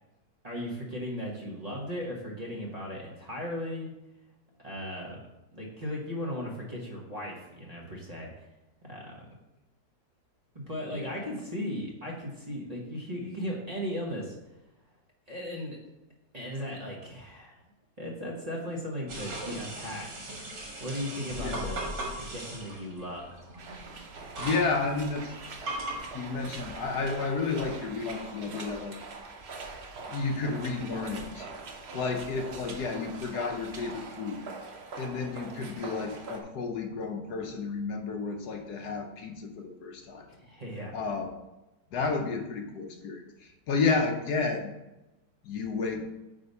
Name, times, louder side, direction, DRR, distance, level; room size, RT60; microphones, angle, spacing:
voice 1, 0.4-3.9 4.6-5.2 5.5-8.3 8.8-9.3 10.5-14.3 15.3-15.8 16.3-17.6 18.0-20.1 20.3-20.5 20.8-21.9 22.2-23.3 40.4-40.9, equal, 25° right, -3 dB, 1.2 m, -37 dB
sound 1, 19.1-26.0, right 1 dB, 75° right, 2.5 m, -38 dB
voice 2, 21.3-21.6 24.4-25.3 26.1-29.0 30.1-31.5 31.9-34.4 35.0-40.3 40.9-41.3 41.9-44.7 45.4-46.0, left 4 dB, 70° left, 4 dB, 1.3 m, -31 dB
sound 2, 23.6-36.4, right 3 dB, 50° right, 0.9 m, -43 dB
8.9 x 3.4 x 5.4 m, 0.97 s
omnidirectional pair, 1.9 m